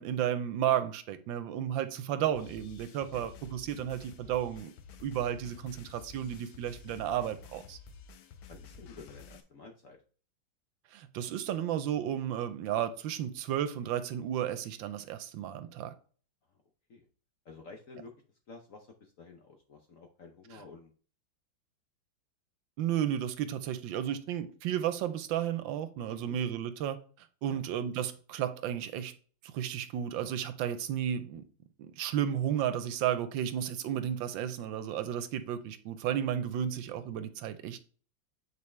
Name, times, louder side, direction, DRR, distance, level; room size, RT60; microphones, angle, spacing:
voice 1, 0.0-4.7 5.0-7.8 10.9-15.9 22.8-29.1 29.4-31.4 31.8-37.8, right 10 dB, 80° right, 1.3 m, -33 dB
sound 1, 2.4-9.4, left 5 dB, 85° left, 1.5 m, -51 dB
voice 2, 8.5-10.0 16.9-17.1 17.4-18.1 18.5-20.9 26.1-26.4 27.5-27.6, left 4 dB, 60° left, 0.8 m, -51 dB
8.3 x 4.6 x 3.2 m
omnidirectional pair, 2.2 m